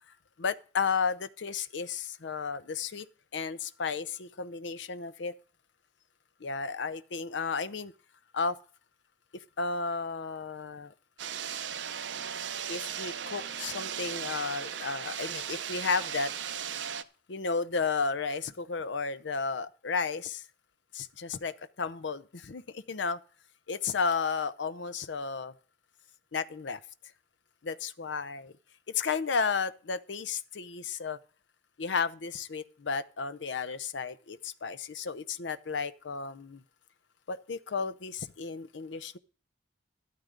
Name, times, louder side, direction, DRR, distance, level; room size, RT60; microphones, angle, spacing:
voice 1, 0.4-3.1 3.3-5.3 6.4-7.9 8.3-8.6 9.3-10.9 12.7-16.3 17.3-20.4 20.9-23.2 23.7-25.5 26.3-26.8 27.6-28.5 28.9-31.2 31.8-36.6 37.3-39.2, left 5 dB, 85° left, 0.7 m, -33 dB
sound 1, 11.2-17.0, right 8 dB, 80° right, 0.8 m, -37 dB
13.0 x 12.5 x 3.8 m
head